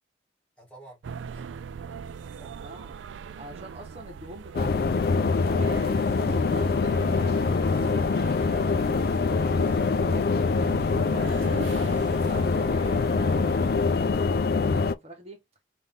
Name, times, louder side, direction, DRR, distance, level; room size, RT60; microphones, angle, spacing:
voice 1, 0.6-1.0 1.3-1.5 2.4-2.5 9.6-10.4 10.8-11.6, right 1 dB, 5° left, 1.9 m, -48 dB
sound 1, 1.0-14.1, right 6 dB, 85° right, 0.3 m, -40 dB
voice 2, 2.6-3.0 3.4-4.9 5.5-8.7 9.0-11.0 12.0-15.4, right 1 dB, 35° right, 1.0 m, -45 dB
sound 2, 4.5-14.9, left 4 dB, 55° left, 0.4 m, -24 dB
5.5 x 2.6 x 3.4 m
head